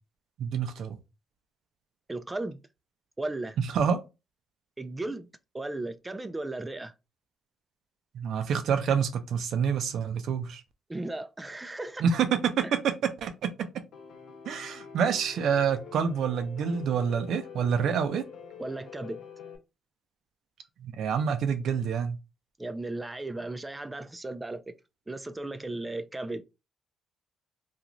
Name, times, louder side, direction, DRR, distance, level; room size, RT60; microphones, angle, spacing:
voice 1, 0.4-1.0 3.6-4.0 8.1-10.6 12.0-12.9 13.2-13.7 14.5-18.2 20.8-22.2, right 7 dB, 75° right, 0.5 m, -27 dB
voice 2, 2.1-2.6 3.2-3.6 4.8-5.3 5.5-6.9 10.9-12.0 12.6-12.7 18.6-19.2 22.6-24.7 25.1-26.4, right 2 dB, 15° right, 0.3 m, -35 dB
Piano, 13.9-19.6, left 6 dB, 80° left, 0.6 m, -46 dB
2.5 x 2.3 x 3.0 m
cardioid pair, 90°, 0 cm